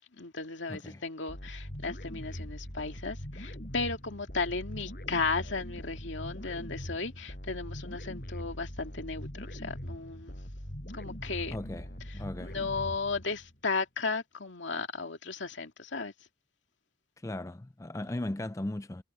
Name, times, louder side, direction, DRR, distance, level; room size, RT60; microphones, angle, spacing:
voice 1, 0.2-10.4 10.9-11.6 12.4-16.1, left 4 dB, 80° left, 2.2 m, -35 dB
voice 2, 0.7-1.0 11.5-11.9 12.1-12.6 17.2-19.0, left 1 dB, 15° left, 0.4 m, -37 dB
sound 1, 1.3-13.5, equal, 50° left, 5.9 m, -42 dB
head